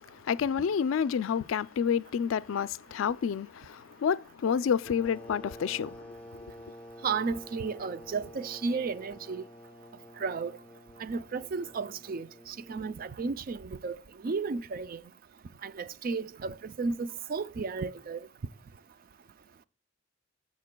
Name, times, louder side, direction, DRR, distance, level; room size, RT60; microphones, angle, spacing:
voice 1, 0.1-6.0 6.3-6.4, left 7 dB, 90° left, 0.3 m, -29 dB
sound 1, 4.9-13.2, left 1 dB, 5° left, 0.8 m, -49 dB
voice 2, 7.0-9.4 10.2-10.5 11.0-14.0 14.2-15.0 15.6-18.3, right 4 dB, 45° right, 0.4 m, -33 dB
14.0 x 5.2 x 2.2 m
head